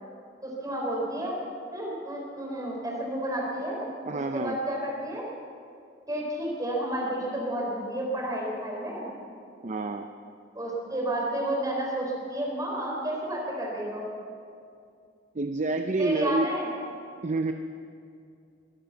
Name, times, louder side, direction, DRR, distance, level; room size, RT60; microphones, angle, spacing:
voice 1, 0.4-1.4 1.7-5.2 6.1-9.1 10.5-14.1 16.0-16.7, right 1 dB, 20° right, -2 dB, 4.2 m, -31 dB
voice 2, 4.0-4.6 9.6-10.0 15.3-16.5 17.2-17.5, right 3 dB, 40° right, 6 dB, 0.6 m, -28 dB
22.5 x 9.2 x 7.1 m, 2.4 s
head